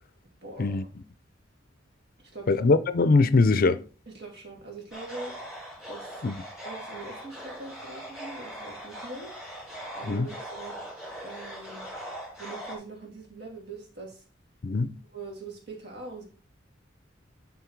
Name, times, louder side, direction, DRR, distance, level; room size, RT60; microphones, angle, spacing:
voice 1, 0.4-0.9 2.2-2.7 4.1-5.3 5.9-6.2 6.6-9.3 9.9-10.8 11.2-11.8 12.4-14.2 15.1-16.2, right 3 dB, 60° right, 2.8 m, -42 dB
voice 2, 2.5-3.8 6.2-6.3 10.1-10.3 14.6-14.9, left 3 dB, 45° left, 0.5 m, -22 dB
sound 1, 4.9-12.8, equal, ahead, 2.9 m, -41 dB
10.5 x 4.0 x 4.6 m
head